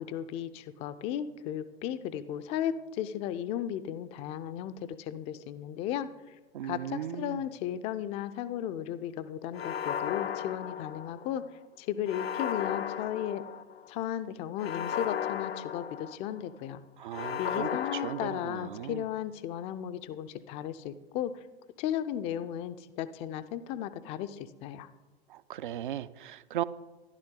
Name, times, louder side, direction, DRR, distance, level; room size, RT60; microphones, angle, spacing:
voice 1, 0.0-6.1 6.6-11.4 11.8-13.4 13.9-16.8 17.4-21.4 21.8-24.9, left 10 dB, 20° left, 0.4 m, -35 dB
voice 2, 6.5-7.4 17.0-19.1 25.3-26.6, right 11 dB, 50° right, 0.5 m, -37 dB
sound 1, 9.5-11.4 12.1-13.9 14.6-16.5 17.1-19.0, left 9 dB, 75° left, 0.6 m, -35 dB
13.0 x 11.5 x 3.8 m
figure-of-eight pair, 100°, 31 cm